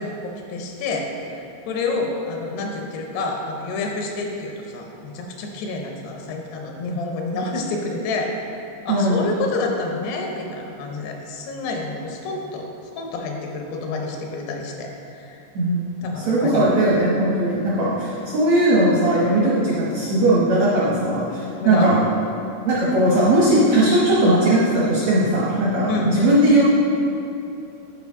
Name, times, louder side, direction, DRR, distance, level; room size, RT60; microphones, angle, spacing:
voice 1, 0.0-12.7 13.0-15.5 16.0-16.7 21.6-21.9 25.9-26.2, left 3 dB, 80° left, 1 dB, 2.8 m, -28 dB
voice 2, 8.9-9.2 15.5-21.9 22.6-26.7, right 1 dB, 75° right, -6 dB, 1.6 m, -18 dB
11.5 x 4.8 x 3.6 m, 2.8 s
omnidirectional pair, 4.7 m